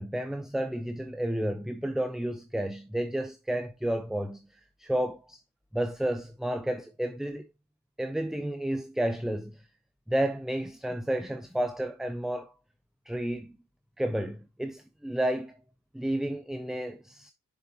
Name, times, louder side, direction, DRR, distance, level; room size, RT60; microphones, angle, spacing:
voice 1, 0.0-5.4 5.7-7.5 8.0-9.7 10.1-12.5 13.1-13.6 14.0-15.6 15.9-17.3, right 1 dB, ahead, 0.6 m, -31 dB
7.2 x 6.4 x 2.8 m
cardioid pair, 90°, 30 cm